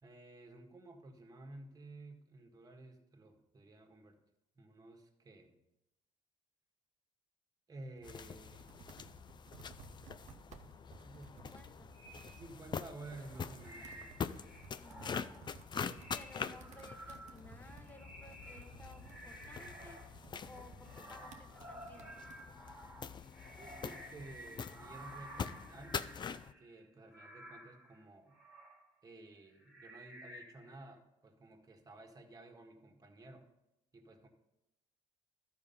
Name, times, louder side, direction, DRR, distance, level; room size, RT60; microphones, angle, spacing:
voice 1, 0.0-4.2 4.5-5.6 7.7-8.7 10.9-11.4 12.3-14.1 23.6-26.0 26.6-28.3 29.0-33.5 33.9-34.3, right 2 dB, 30° right, 3 dB, 1.6 m, -53 dB
Computer keyboard, 7.8-22.4, right 6 dB, 60° right, 1.0 m, -58 dB
sound 1, 8.0-26.5, left 6 dB, 35° left, 0.4 m, -45 dB
voice 2, 11.3-11.9 14.8-15.4 15.8-22.2, left 1 dB, 15° left, 5 dB, 1.4 m, -57 dB
sound 2, 11.9-12.4 13.1-20.1 20.4-28.8 29.5-30.9, right 1 dB, ahead, 2.1 m, -54 dB
12.0 x 5.0 x 5.6 m, 0.92 s
supercardioid pair, 80°, 13 cm